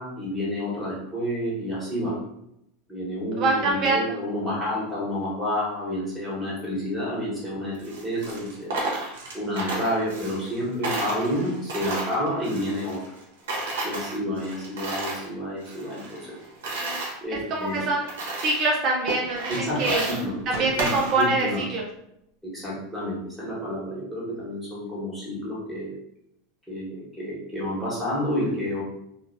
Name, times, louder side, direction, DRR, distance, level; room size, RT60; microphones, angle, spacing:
voice 1, 0.0-2.2 2.9-8.8 9.3-13.0 13.8-16.3 17.2-17.8 19.5-21.6 22.4-25.9 26.7-28.8, equal, ahead, -7 dB, 1.4 m, -29 dB
voice 2, 3.4-4.1 16.8-17.0 17.3-18.1 18.4-19.5 19.8-20.0 20.5-21.8, right 2 dB, 45° right, -2 dB, 0.5 m, -24 dB
Coin (dropping), 7.7-10.6 10.8-13.2 13.5-15.3 15.6-17.1 17.7-17.8 18.1-18.7 19.1-21.5, right 2 dB, 85° right, 0.9 m, -32 dB
2.6 x 2.5 x 2.6 m, 0.80 s
supercardioid pair, 125°, 0 cm